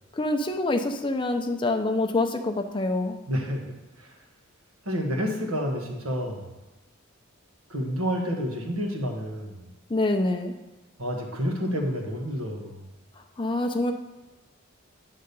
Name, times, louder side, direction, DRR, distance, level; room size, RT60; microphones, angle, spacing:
voice 1, 0.1-3.2 9.9-10.5 13.4-13.9, left 2 dB, 25° left, 5 dB, 0.5 m, -26 dB
voice 2, 3.3-3.6 4.0-4.1 4.8-6.5 7.7-9.7 11.0-12.8, equal, 90° right, 1 dB, 1.5 m, -29 dB
9.8 x 3.8 x 6.8 m, 1.1 s
head